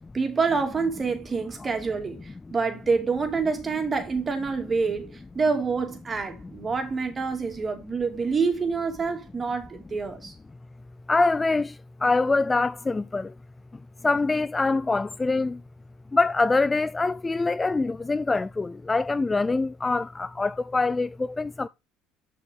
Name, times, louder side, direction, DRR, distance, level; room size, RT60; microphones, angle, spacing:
voice 1, 0.1-10.3, right 4 dB, 30° right, 2.7 m, -27 dB
voice 2, 11.1-13.3 14.0-15.6 16.1-21.7, left 3 dB, 20° left, 0.3 m, -24 dB
6.9 x 6.1 x 3.8 m
hypercardioid pair, 75°, 0 cm